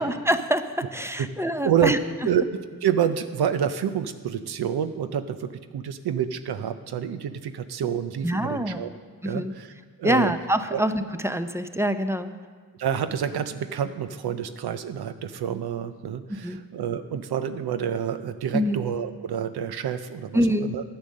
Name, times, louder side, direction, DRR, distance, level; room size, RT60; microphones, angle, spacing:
voice 1, 0.0-2.0 8.2-8.8 9.2-9.5 10.0-12.3 16.4-16.6 18.5-18.8 20.3-20.7, equal, 5° right, 9 dB, 0.6 m, -25 dB
voice 2, 1.6-1.9 2.3-8.9 9.2-9.7 10.0-10.3 10.7-10.8 12.8-20.4 20.7-20.8, right 8 dB, 85° right, 10 dB, 0.6 m, -28 dB
10.0 x 7.6 x 6.4 m, 1.5 s
cardioid pair, 55°, 37 cm